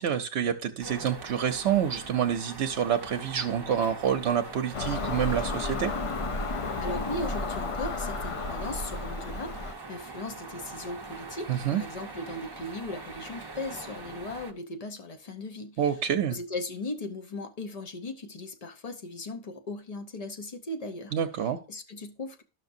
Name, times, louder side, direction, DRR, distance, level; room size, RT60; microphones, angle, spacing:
voice 1, 0.0-5.9 11.5-11.8 15.8-16.4 21.1-21.6, right 9 dB, 70° right, 0.9 m, -27 dB
sound 1, 0.8-14.5, right 3 dB, 25° right, 0.6 m, -43 dB
Car passing by / Engine, 4.7-9.7, left 3 dB, 55° left, 0.3 m, -32 dB
voice 2, 6.8-16.0 16.3-21.1 21.7-22.4, left 2 dB, 35° left, 0.8 m, -38 dB
12.5 x 5.8 x 2.6 m
omnidirectional pair, 1.2 m